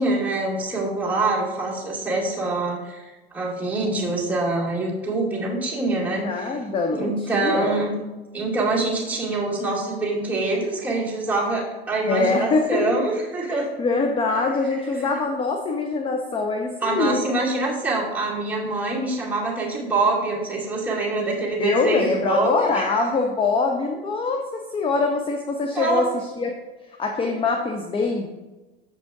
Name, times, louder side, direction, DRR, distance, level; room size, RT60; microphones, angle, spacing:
voice 1, 0.0-3.0 3.3-6.5 6.9-8.0 8.3-13.7 15.0-15.2 16.8-22.8 25.7-26.1, right 2 dB, 5° right, -6 dB, 2.2 m, -25 dB
voice 2, 6.2-7.9 12.1-13.0 13.5-17.2 21.6-26.5 27.0-28.3, left 3 dB, 15° left, 2 dB, 0.6 m, -24 dB
7.0 x 5.1 x 3.6 m, 1.1 s
hypercardioid pair, 90°, 32 cm